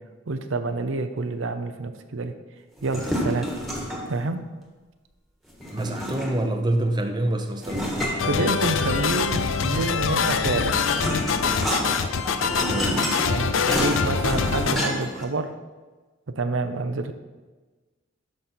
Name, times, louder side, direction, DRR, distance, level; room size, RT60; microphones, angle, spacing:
voice 1, 0.3-2.3 2.8-3.5 4.1-4.4 8.2-10.8 13.3-15.5 16.4-17.1, right 3 dB, 80° right, 8 dB, 0.7 m, -28 dB
sound 1, 2.8-4.2 5.6-6.6 7.6-9.0 10.2-15.2, equal, ahead, 1.7 m, -29 dB
voice 2, 5.7-8.2 12.4-13.0, right 1 dB, 20° right, 4 dB, 0.7 m, -27 dB
sound 2, 8.2-14.7, left 6 dB, 90° left, 0.5 m, -24 dB
12.5 x 5.4 x 4.4 m, 1.3 s
head